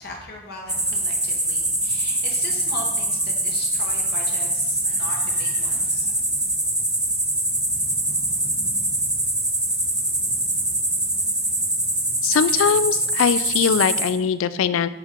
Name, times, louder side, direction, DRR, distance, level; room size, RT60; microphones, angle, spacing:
voice 1, 0.0-6.2, left 2 dB, 45° left, 1 dB, 1.0 m, -38 dB
sound 1, 0.7-14.1, right 1 dB, 5° right, 0.7 m, -23 dB
voice 2, 12.2-14.9, left 7 dB, 65° left, 15 dB, 0.3 m, -21 dB
7.2 x 5.1 x 4.4 m, 1.0 s
head